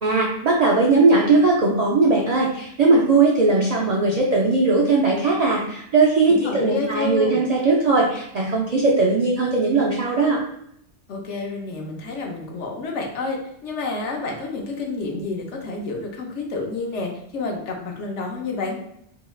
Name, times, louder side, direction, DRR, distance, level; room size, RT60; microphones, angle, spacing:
voice 1, 0.0-10.4, right 3 dB, 65° right, -3 dB, 0.4 m, -19 dB
voice 2, 6.3-7.4 11.1-18.8, left 3 dB, 80° left, 1 dB, 1.0 m, -29 dB
2.8 x 2.2 x 3.1 m, 0.73 s
omnidirectional pair, 1.2 m